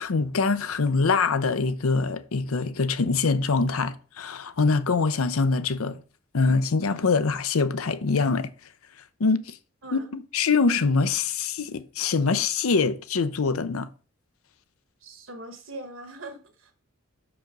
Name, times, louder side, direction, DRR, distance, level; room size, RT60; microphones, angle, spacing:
voice 1, 0.0-6.0 6.3-8.5 9.2-9.6 9.9-13.9, left 4 dB, 80° left, 0.6 m, -24 dB
voice 2, 9.8-10.1 15.0-16.7, right 2 dB, 65° right, 1.4 m, -41 dB
6.0 x 5.0 x 5.2 m
head